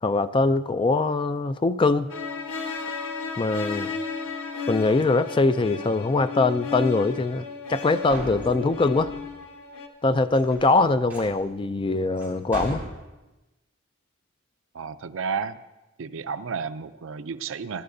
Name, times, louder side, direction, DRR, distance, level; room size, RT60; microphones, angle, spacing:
voice 1, 0.0-2.1 3.4-3.9 4.7-9.1 10.0-12.8, left 3 dB, 25° left, 12 dB, 0.3 m, -22 dB
sound 1, 2.1-9.9, left 4 dB, 90° left, 1.5 m, -34 dB
sound 2, 7.8-7.9 8.1-9.3 10.3-11.4 12.2-12.3 12.5-12.9, right 1 dB, 10° right, 5.6 m, -37 dB
voice 2, 14.7-15.6 16.0-17.8, right 5 dB, 65° right, 11 dB, 0.5 m, -32 dB
21.5 x 12.5 x 2.7 m, 1.1 s
head